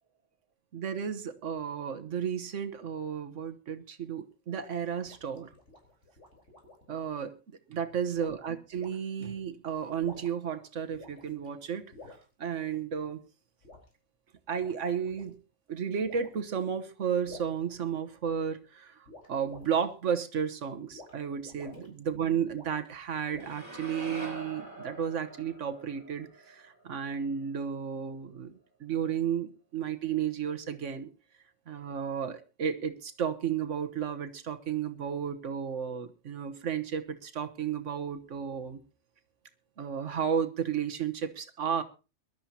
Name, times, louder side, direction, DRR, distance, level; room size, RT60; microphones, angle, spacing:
voice 1, 0.7-5.5 6.9-7.4 7.7-13.2 14.5-15.4 15.7-28.5 28.8-31.1 31.7-38.8 39.8-41.8, right 7 dB, 85° right, 1.4 m, -33 dB
sound 1, 4.6-6.9 8.2-8.4 8.8-9.0 9.8-10.5 10.9-11.5 11.9-12.2 13.6-13.9 14.5-15.3 16.0-16.4 17.2-18.4 19.1-19.9 20.9-21.1 21.4-21.9 22.5-22.9 23.3-23.8, left 2 dB, 75° left, 4.6 m, -50 dB
sound 2, 23.4-27.6, right 2 dB, 45° right, 3.2 m, -44 dB
23.0 x 12.5 x 2.8 m
omnidirectional pair, 1.2 m